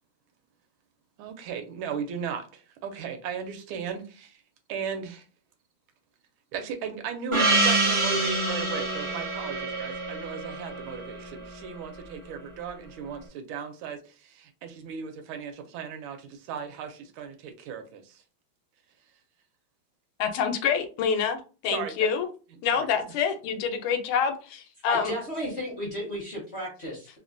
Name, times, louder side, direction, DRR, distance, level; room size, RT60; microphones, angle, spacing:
voice 1, 1.2-4.4 4.7-5.2 6.5-18.2 21.7-22.1 22.7-22.9, right 7 dB, 80° right, 6 dB, 1.4 m, -36 dB
Gong, 7.3-12.1, right 2 dB, 50° right, 0.3 m, -27 dB
voice 2, 20.2-22.3 22.6-25.1, left 7 dB, 85° left, 6 dB, 1.5 m, -27 dB
voice 3, 24.9-27.1, equal, 55° left, -3 dB, 0.7 m, -33 dB
3.5 x 2.1 x 2.5 m, 0.35 s
omnidirectional pair, 2.3 m